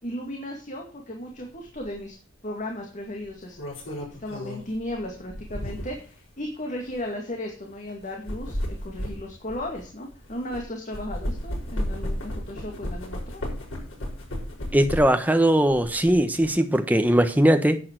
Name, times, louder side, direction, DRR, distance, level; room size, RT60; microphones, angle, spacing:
voice 1, 0.0-2.1 2.4-3.6 4.2-13.4, left 1 dB, 40° left, 1 dB, 2.2 m, -35 dB
sound 1, 1.8-2.0 3.2-6.1 6.8-6.9 8.0-10.6 10.9-15.3 15.7-16.5, equal, 90° left, 6.1 m, -33 dB
voice 2, 14.7-17.8, right 1 dB, 10° right, 8 dB, 1.1 m, -20 dB
10.5 x 8.6 x 4.6 m, 0.37 s
head